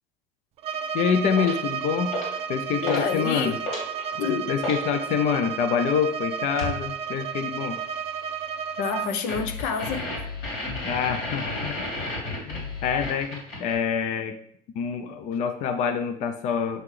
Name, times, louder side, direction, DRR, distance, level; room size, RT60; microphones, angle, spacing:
Bowed string instrument, 0.6-9.2, right 7 dB, 35° right, 0.4 m, -32 dB
voice 1, 0.9-2.2 2.5-3.6 4.5-7.8 10.8-11.9 12.4-14.4 14.7-16.8, left 7 dB, 40° left, 0.5 m, -26 dB
sound 1, 1.4-1.6 2.1-2.4 2.8-3.1 3.4-4.8 6.6-6.8 9.3-13.7, left 2 dB, 60° left, 3.1 m, -32 dB
voice 2, 2.8-3.6 4.1-4.5 8.8-10.3, left 6 dB, 75° left, 0.8 m, -28 dB
6.8 x 5.7 x 3.2 m
cardioid pair, 165°, 18 cm